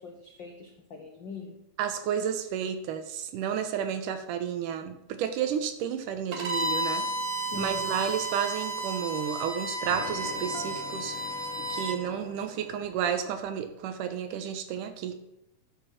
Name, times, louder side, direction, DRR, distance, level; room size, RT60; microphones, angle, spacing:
voice 1, 0.0-1.6 7.5-7.9, left 4 dB, 75° left, 2 dB, 1.0 m, -42 dB
voice 2, 1.8-7.1 7.6-11.3 11.6-15.2, right 8 dB, 80° right, 7 dB, 2.5 m, -31 dB
Bowed string instrument, 6.3-12.0, right 1 dB, 65° right, 0.9 m, -32 dB
sound 1, 6.4-8.8 9.9-13.5, left 4 dB, 90° left, 2.7 m, -44 dB
11.5 x 7.1 x 5.7 m, 0.84 s
omnidirectional pair, 3.7 m